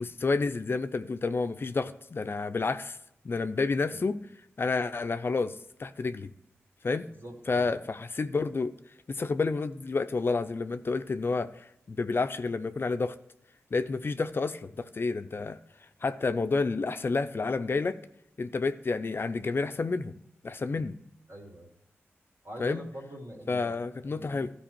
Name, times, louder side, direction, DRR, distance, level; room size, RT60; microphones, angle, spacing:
voice 1, 0.0-3.0 3.2-4.2 4.6-6.3 6.8-7.0 7.5-8.7 9.1-13.2 13.7-15.6 16.0-18.0 18.4-20.1 20.4-21.0 22.6-22.8 23.5-24.5, left 4 dB, 50° left, 10 dB, 0.5 m, -30 dB
voice 2, 7.2-7.7 20.7-20.8 21.3-21.7 22.4-23.8 24.0-24.4, equal, 50° right, -1 dB, 2.7 m, -44 dB
13.0 x 4.8 x 4.4 m, 0.80 s
cardioid pair, 50°, 5 cm